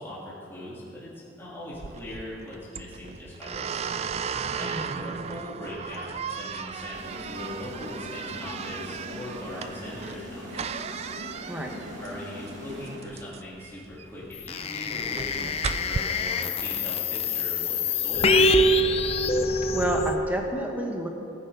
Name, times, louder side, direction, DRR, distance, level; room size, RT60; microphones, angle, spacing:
voice 1, 0.0-3.6 4.5-10.7 12.0-15.5 15.8-18.7, left 1 dB, 15° left, -9 dB, 3.1 m, -40 dB
sound 1, 1.7-16.0, right 6 dB, 35° right, 0.3 m, -36 dB
voice 2, 4.6-5.1 11.5-11.8 19.7-21.1, equal, 10° right, 1 dB, 1.3 m, -30 dB
sound 2, 6.9-13.6, equal, 75° right, 2.9 m, -41 dB
sound 3, 14.5-20.2, left 2 dB, 30° left, 0.4 m, -25 dB
21.0 x 9.6 x 3.9 m, 2.6 s
head